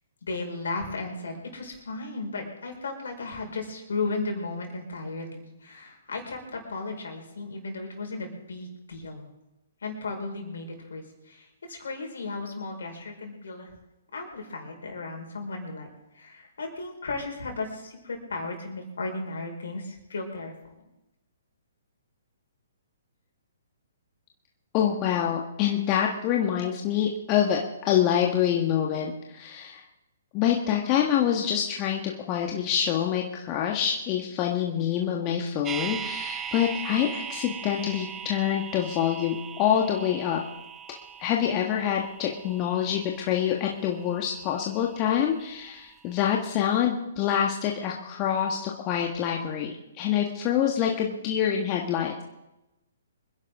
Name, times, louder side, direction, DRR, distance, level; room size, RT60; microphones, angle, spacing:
voice 1, 0.2-9.3 9.8-13.7 14.1-15.9 16.1-20.5, left 3 dB, 70° left, 2 dB, 4.7 m, -35 dB
voice 2, 24.7-29.8 30.3-40.4 41.2-52.2, left 9 dB, 30° left, 0 dB, 1.6 m, -26 dB
sound 1, 35.6-45.7 46.0-46.1, right 8 dB, 15° right, 0.8 m, -39 dB
25.5 x 11.0 x 3.7 m, 0.94 s
figure-of-eight pair, 125°, 0 cm